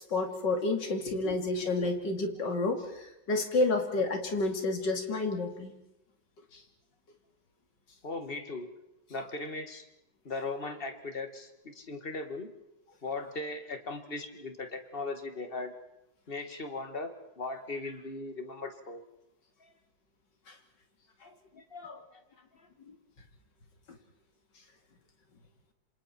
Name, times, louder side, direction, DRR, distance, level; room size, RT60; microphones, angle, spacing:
voice 1, 0.0-5.7 6.5-6.6 20.5-20.6 22.8-22.9, left 2 dB, 70° left, 5 dB, 3.1 m, -30 dB
voice 2, 8.0-8.7 9.1-9.8 10.3-12.5 13.0-15.7 16.3-19.0 21.2-22.2, left 3 dB, 30° left, 7 dB, 2.0 m, -38 dB
27.5 x 27.0 x 4.4 m, 0.86 s
omnidirectional pair, 2.0 m